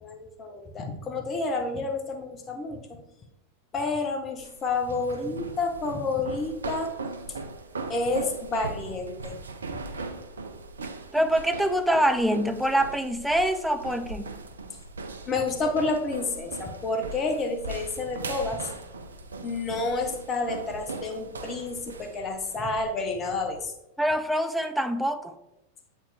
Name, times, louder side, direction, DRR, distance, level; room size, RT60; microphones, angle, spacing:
voice 1, 0.0-3.0 3.7-6.9 7.9-9.4 15.3-18.7 19.4-23.7, left 3 dB, 25° left, 4 dB, 1.0 m, -29 dB
sound 1, 4.4-23.6, right 3 dB, 70° right, 0.5 m, -39 dB
voice 2, 11.1-14.3 24.0-25.3, equal, ahead, 8 dB, 0.5 m, -25 dB
7.7 x 4.4 x 3.4 m, 0.90 s
figure-of-eight pair, 90°, 0 cm